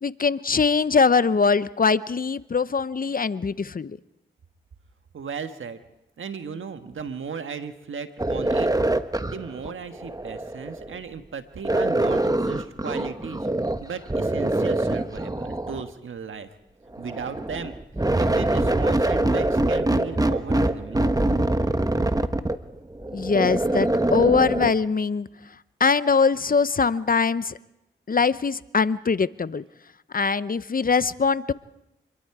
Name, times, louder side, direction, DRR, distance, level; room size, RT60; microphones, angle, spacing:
voice 1, 0.0-4.0 23.1-25.3 25.8-27.6 28.1-29.6 30.1-31.5, left 5 dB, 45° left, 16 dB, 0.7 m, -22 dB
voice 2, 5.1-5.8 6.2-8.7 9.2-13.5 13.8-16.5 17.0-17.7 18.0-21.0, right 6 dB, 80° right, 8 dB, 1.5 m, -36 dB
sound 1, 8.2-11.0 11.6-13.8 14.1-15.9 16.9-24.7, right 1 dB, 20° right, 1.2 m, -24 dB
26.5 x 22.0 x 4.8 m, 0.88 s
cardioid pair, 45°, 20 cm